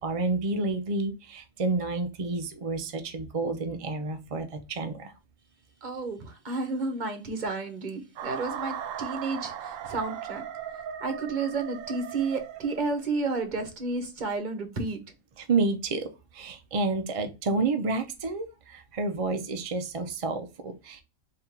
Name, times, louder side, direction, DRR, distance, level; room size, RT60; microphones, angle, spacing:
voice 1, 0.0-5.1 15.4-21.0, right 3 dB, 60° right, 0.3 m, -30 dB
voice 2, 5.8-10.4 11.0-15.0, right 3 dB, 40° right, 1.0 m, -31 dB
sound 1, 8.2-13.1, right 9 dB, 90° right, 1.0 m, -38 dB
3.7 x 2.8 x 4.3 m
omnidirectional pair, 1.3 m